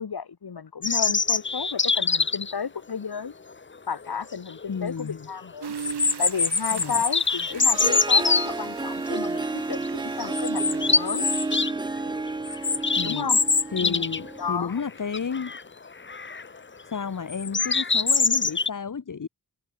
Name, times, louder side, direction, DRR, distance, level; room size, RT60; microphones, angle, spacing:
voice 1, 0.0-3.3 3.9-5.8 6.2-11.3 13.0-13.4 13.8-14.0 14.4-14.8, left 6 dB, 70° left, 5.5 m, -32 dB
sound 1, 0.8-2.5 4.1-4.2 4.6-4.7 5.8-8.5 9.2-9.4 9.7-9.9 10.3-11.7 12.0-14.3 14.6-14.7 15.1-15.6 16.1-16.5 17.3-18.7, left 4 dB, 30° left, 1.1 m, -24 dB
voice 2, 4.7-5.3 6.7-7.0 13.0-13.3 13.7-15.5 16.8-19.3, left 6 dB, 50° left, 1.8 m, -32 dB
sound 2, 5.6-11.5, right 7 dB, 75° right, 2.5 m, -41 dB
Harp, 7.5-14.6, right 3 dB, 10° right, 0.4 m, -31 dB
wide cardioid pair, 75°, 40 cm